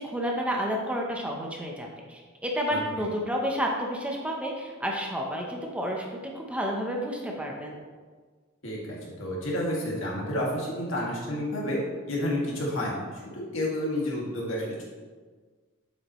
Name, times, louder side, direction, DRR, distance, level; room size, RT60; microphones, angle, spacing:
voice 1, 0.0-7.8, equal, 5° right, -1 dB, 0.9 m, -30 dB
voice 2, 2.7-3.1 8.6-11.8 12.1-13.0 13.3-14.8, left 1 dB, 75° left, -4 dB, 2.3 m, -30 dB
8.5 x 7.8 x 3.2 m, 1.5 s
head